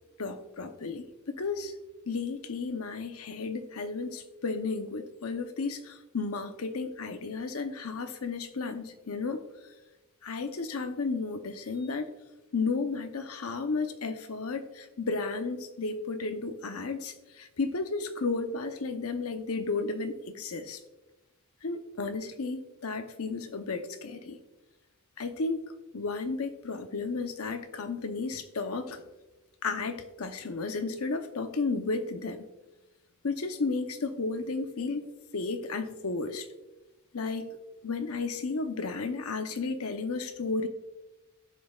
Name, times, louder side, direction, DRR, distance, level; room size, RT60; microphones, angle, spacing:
voice 1, 0.2-1.7 2.1-9.4 10.2-12.1 12.5-20.8 21.6-24.4 25.2-29.0 29.6-32.4 33.2-35.0 35.3-36.4 37.1-37.5 37.8-40.7, left 4 dB, 70° left, 7 dB, 0.8 m, -33 dB
16.0 x 5.3 x 2.4 m, 1.1 s
head